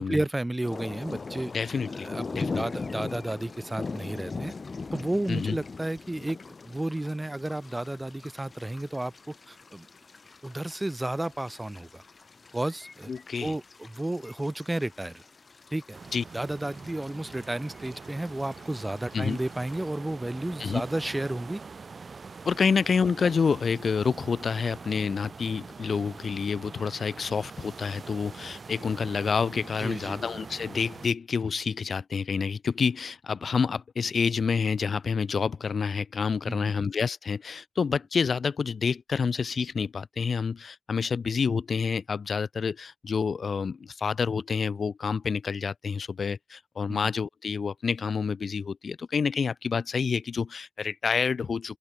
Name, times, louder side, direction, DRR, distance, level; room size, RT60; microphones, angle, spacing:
voice 1, 0.0-4.5 4.9-6.4 6.6-9.9 10.4-12.0 12.5-13.1 13.4-15.2 15.7-16.0 16.3-21.6 29.8-30.2 36.5-36.7 46.9-47.1, right 1 dB, 20° right, 1.8 m, -32 dB
sound 1, 0.6-19.8, left 4 dB, 65° left, 5.5 m, -41 dB
voice 2, 1.5-2.1 2.4-2.6 5.3-5.6 13.1-13.5 16.1-16.2 19.1-19.4 20.6-20.8 22.4-51.8, left 5 dB, 90° left, 1.9 m, -28 dB
sound 2, 15.9-31.1, right 4 dB, 70° right, 5.5 m, -44 dB
wide cardioid pair, 65°, 0 cm